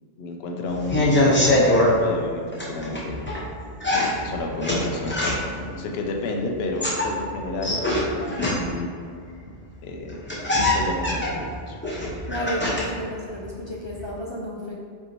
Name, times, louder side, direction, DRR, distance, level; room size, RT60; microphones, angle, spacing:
voice 1, 0.2-3.2 3.9-8.0 8.5-8.9 9.8-10.2 10.6-11.7, left 2 dB, 75° left, 1 dB, 0.8 m, -31 dB
sound 1, 0.7-1.9 2.5-3.4 3.8-5.6 6.6-8.9 9.8-9.9 10.1-13.0 13.3-14.0, left 1 dB, 10° left, 0.7 m, -23 dB
voice 2, 12.3-14.7, equal, 50° left, -3 dB, 0.3 m, -32 dB
5.3 x 2.8 x 3.0 m, 2.2 s
omnidirectional pair, 1.1 m